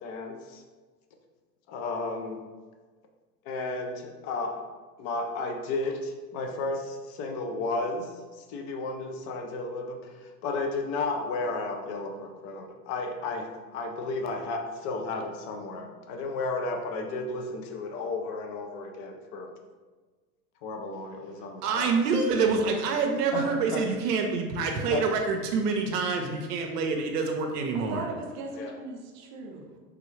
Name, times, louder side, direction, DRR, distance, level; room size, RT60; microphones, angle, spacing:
voice 1, 0.0-0.6 1.7-2.4 3.4-4.6 5.0-19.5 20.6-21.9 23.3-23.5 23.7-23.8 24.9-25.0 28.6-28.7, left 3 dB, 35° left, 4 dB, 0.4 m, -33 dB
voice 2, 21.6-28.1, right 4 dB, 75° right, 2 dB, 0.6 m, -26 dB
voice 3, 27.7-29.8, right 2 dB, 35° right, 1 dB, 0.6 m, -38 dB
3.4 x 2.3 x 3.1 m, 1.4 s
hypercardioid pair, 110°, 48 cm